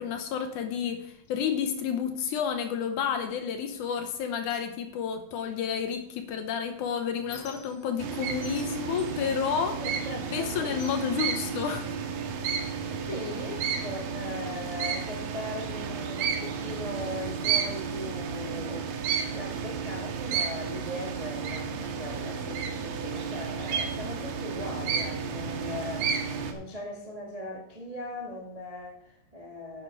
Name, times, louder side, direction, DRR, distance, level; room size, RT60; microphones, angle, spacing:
voice 1, 0.0-9.8 10.3-11.9, left 7 dB, 70° left, 7 dB, 2.1 m, -30 dB
Squeak, 6.3-8.1 8.4-10.1 10.5-12.2 12.9-13.1 13.4-14.4, left 4 dB, 50° left, 1.5 m, -50 dB
sound 1, 8.0-26.5, right 6 dB, 75° right, 2.7 m, -32 dB
voice 2, 9.8-10.8 13.1-18.8 19.2-29.8, left 1 dB, 35° right, -2 dB, 0.6 m, -39 dB
9.8 x 9.7 x 4.7 m, 0.75 s
omnidirectional pair, 4.1 m